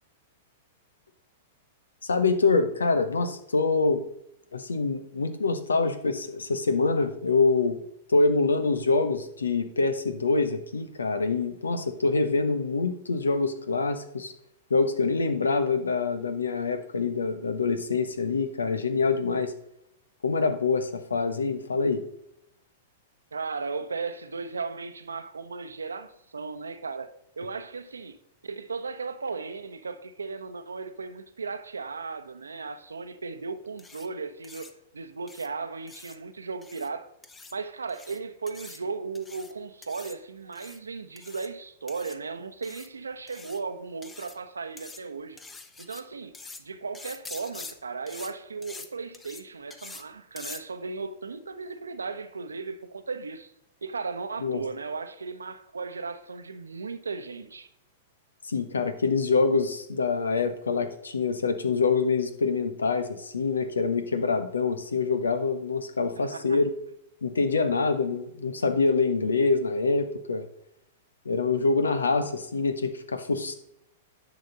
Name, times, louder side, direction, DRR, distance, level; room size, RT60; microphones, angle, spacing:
voice 1, 2.0-4.0 4.5-7.8 8.1-14.3 14.7-19.5 20.2-22.0 54.4-54.6 58.4-66.7 67.2-70.5 71.2-73.5, left 4 dB, 80° left, 1.0 m, -25 dB
voice 2, 23.3-28.2 28.4-37.1 37.5-45.4 45.8-46.3 46.6-53.5 53.8-57.7 66.2-66.6, right 4 dB, 80° right, 0.8 m, -36 dB
sound 1, 33.8-34.1 34.4-34.7 35.3-35.5 35.9-36.2 36.6-36.9 37.2-37.5 37.9-38.2 38.5-38.8 39.1-39.5 39.8-40.2 40.5-40.8 41.2-41.5 41.9-42.2 42.6-42.9 43.3-43.6 44.0-44.4 44.8-45.0 45.4-46.0 46.3-46.6 46.9-47.7 48.1-48.3 48.6-48.9 49.1-49.4 49.7-50.0 50.4-50.6, left 3 dB, 15° left, 0.9 m, -44 dB
10.5 x 6.2 x 4.0 m
figure-of-eight pair, 100°, 0 cm